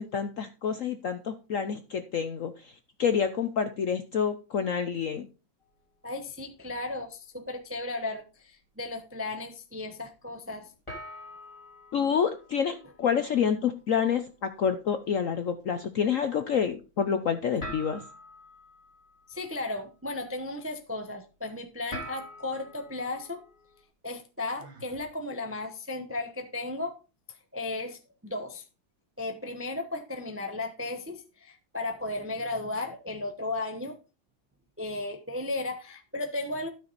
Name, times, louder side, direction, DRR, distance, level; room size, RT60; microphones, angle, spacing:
voice 1, 0.0-2.7 3.0-5.3 11.9-18.0, left 7 dB, 60° left, 9 dB, 0.8 m, -28 dB
sound 1, 5.6-7.2 7.5-7.9 8.5-8.6 10.9-23.8, equal, 15° left, 3.2 m, -48 dB
voice 2, 6.0-10.7 19.3-23.4 24.0-26.9 27.5-28.6 29.2-34.0 34.8-36.7, left 2 dB, 15° right, 6 dB, 0.5 m, -35 dB
Sigh, 24.6-25.1, right 2 dB, 75° right, 2.8 m, -51 dB
12.5 x 6.1 x 4.0 m, 0.31 s
omnidirectional pair, 2.1 m